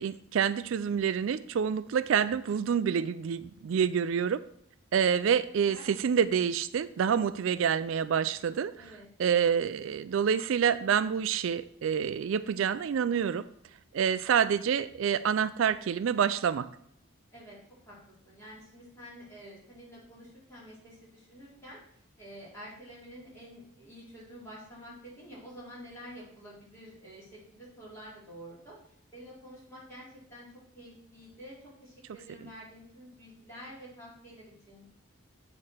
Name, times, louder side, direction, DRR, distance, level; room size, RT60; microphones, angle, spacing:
voice 1, 0.0-4.4 4.9-8.8 9.2-13.5 13.9-16.7, right 7 dB, 70° right, 14 dB, 0.3 m, -27 dB
voice 2, 8.8-9.1 17.3-17.6 17.9-18.0 18.2-28.8 29.1-30.5 30.7-31.6 31.8-34.9, equal, 10° left, -9 dB, 4.1 m, -49 dB
8.6 x 4.3 x 6.3 m, 0.70 s
head